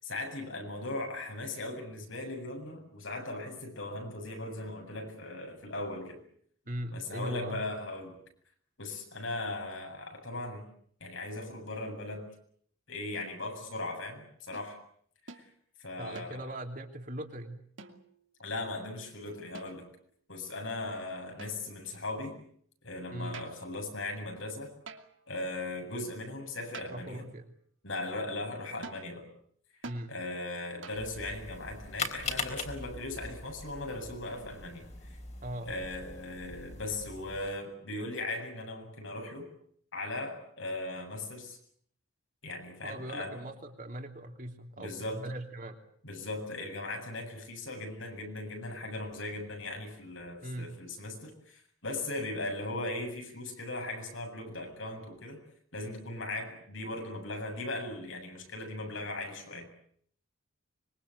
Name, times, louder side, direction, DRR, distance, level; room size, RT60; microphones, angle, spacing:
voice 1, 0.0-6.2 6.9-8.2 8.8-10.6 11.0-12.3 12.9-14.8 15.3-15.4 15.8-16.5 18.4-19.9 20.3-22.4 22.8-24.7 25.3-27.2 27.8-29.3 30.1-35.2 35.6-39.5 39.9-41.6 42.4-43.3 44.8-45.2 46.0-55.4 55.7-59.7, left 2 dB, 75° left, 3 dB, 8.0 m, -38 dB
voice 2, 6.7-7.6 16.0-17.6 23.1-23.4 26.9-27.5 29.8-30.1 35.4-35.7 42.8-45.8 50.4-50.7, right 1 dB, 40° right, 3 dB, 3.2 m, -40 dB
sound 1, 14.5-14.7 15.3-15.5 16.2-16.7 17.8-18.2 19.5-20.1 21.4-21.9 23.3-23.7 24.9-25.3 26.7-27.2 28.8-29.1 29.8-30.1 30.8-31.2, right 4 dB, 70° right, 2.6 m, -48 dB
sound 2, 30.9-37.5, left 4 dB, 35° left, 3.9 m, -41 dB
25.5 x 23.0 x 8.1 m, 0.63 s
head